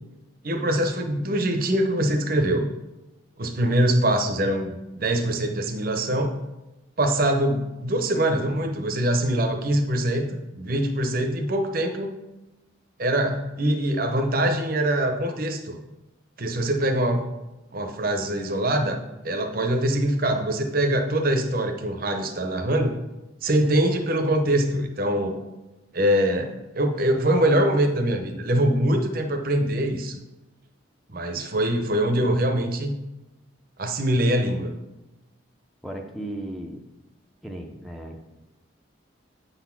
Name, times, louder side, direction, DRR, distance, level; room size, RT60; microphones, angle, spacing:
voice 1, 0.4-2.6 3.4-6.4 7.0-10.3 10.5-12.1 13.0-15.8 16.4-17.3 17.7-19.0 19.2-23.0 23.4-25.4 25.9-30.2 31.1-32.9 33.8-34.7, right 1 dB, 50° right, 5 dB, 0.8 m, -23 dB
voice 2, 35.8-36.8 37.4-38.2, right 1 dB, ahead, 2 dB, 0.6 m, -35 dB
8.1 x 4.0 x 5.9 m, 1.0 s
head